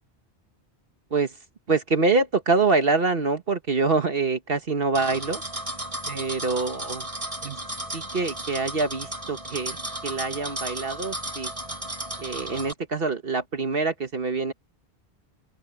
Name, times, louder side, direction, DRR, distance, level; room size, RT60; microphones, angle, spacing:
voice 1, 1.7-5.4 6.1-7.1 7.4-7.6 7.9-9.8 10.0-11.5 12.2-14.5, right 4 dB, 60° right, 1.5 m, -25 dB
sound 1, 4.9-12.7, right 1 dB, 30° right, 7.4 m, -34 dB
open air
omnidirectional pair, 1.1 m